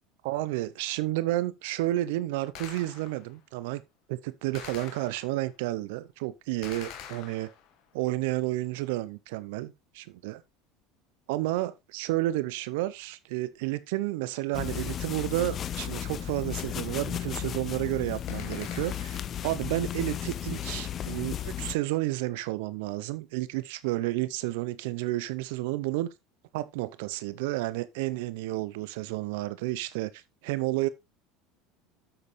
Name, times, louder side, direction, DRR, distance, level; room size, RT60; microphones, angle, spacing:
voice 1, 0.2-3.8 4.1-7.5 7.9-10.4 11.3-26.1 26.5-30.9, right 17 dB, 75° right, 0.6 m, -31 dB
Gunshot gunfire, 2.6-3.4 4.6-5.5 6.6-7.9 18.3-19.4, left 9 dB, 60° left, 1.7 m, -45 dB
sound 1, 14.5-21.7, left 10 dB, 40° left, 0.6 m, -34 dB
8.0 x 7.8 x 3.1 m
hypercardioid pair, 85°, 0 cm